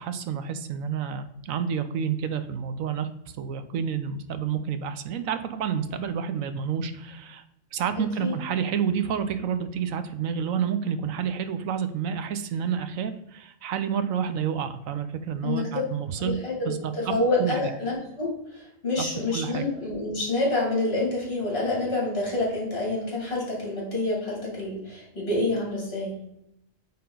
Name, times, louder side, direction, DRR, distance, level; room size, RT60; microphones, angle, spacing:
voice 1, 0.0-3.1 3.4-7.4 7.7-16.3 16.6-17.1 17.4-17.7 19.0-19.1 19.3-19.6, right 7 dB, 80° right, 10 dB, 1.1 m, -29 dB
voice 2, 16.2-26.2, left 2 dB, 45° left, -2 dB, 2.5 m, -28 dB
8.5 x 3.8 x 3.8 m, 0.80 s
omnidirectional pair, 1.4 m